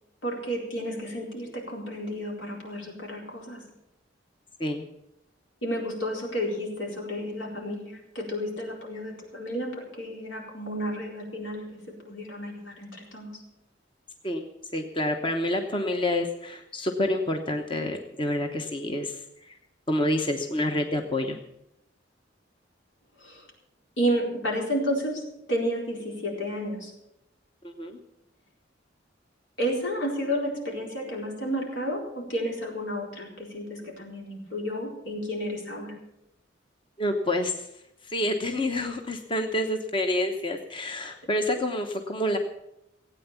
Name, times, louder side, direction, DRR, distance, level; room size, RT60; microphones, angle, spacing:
voice 1, 0.2-3.6 5.6-13.3 23.2-23.5 24.0-25.2 25.5-26.9 29.6-36.0, equal, 80° left, -1 dB, 4.3 m, -31 dB
voice 2, 14.7-19.5 19.9-21.4 27.6-28.0 37.0-37.7 38.0-42.4, left 1 dB, 25° left, 4 dB, 1.0 m, -28 dB
16.5 x 9.0 x 7.1 m, 0.84 s
head